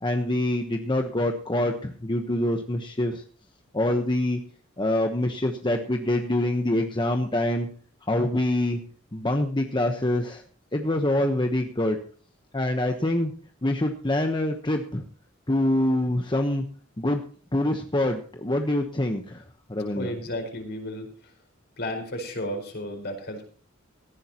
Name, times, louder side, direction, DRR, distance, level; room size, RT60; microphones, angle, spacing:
voice 1, 0.0-3.2 3.7-4.4 4.8-7.7 8.1-8.8 9.1-10.4 10.7-12.0 12.5-13.3 13.6-15.0 15.5-16.6 17.0-17.2 17.5-19.4 19.7-20.1, left 1 dB, 25° left, 4 dB, 1.1 m, -25 dB
voice 2, 19.9-21.3 21.8-23.4, left 1 dB, 50° left, 3 dB, 4.8 m, -33 dB
17.5 x 15.0 x 3.0 m, 0.42 s
head